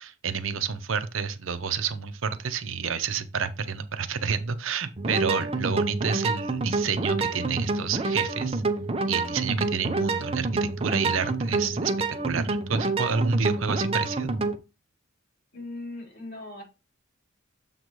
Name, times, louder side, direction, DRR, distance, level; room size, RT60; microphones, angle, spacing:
voice 1, 0.0-8.6 9.1-11.9 12.2-14.3, right 6 dB, 70° right, 0.7 m, -29 dB
sound 1, 5.0-14.6, right 3 dB, 30° right, 0.7 m, -28 dB
voice 2, 15.5-16.6, left 2 dB, 55° left, 3.7 m, -38 dB
7.2 x 4.0 x 4.7 m
head